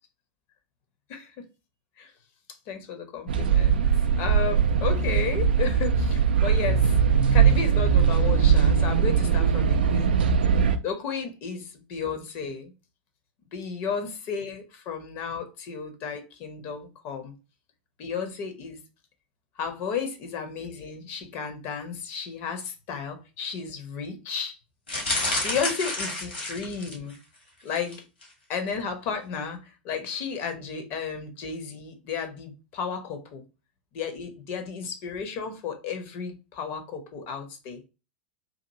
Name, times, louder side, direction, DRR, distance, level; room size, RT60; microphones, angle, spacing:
voice 1, 1.1-1.5 2.0-2.1 2.7-3.9 4.2-6.9 7.3-10.2 10.8-12.7 13.5-17.3 18.0-18.8 19.6-24.6 25.4-27.2 27.6-28.0 28.5-33.4 33.9-37.8, left 6 dB, 45° left, 0.7 m, -33 dB
sound 1, 3.3-10.8, right 7 dB, 65° right, 0.3 m, -21 dB
sound 2, 24.9-27.2 27.7-28.0 28.2-28.3, left 2 dB, 75° left, 1.3 m, -30 dB
2.7 x 2.6 x 2.6 m
figure-of-eight pair, 90°, 6 cm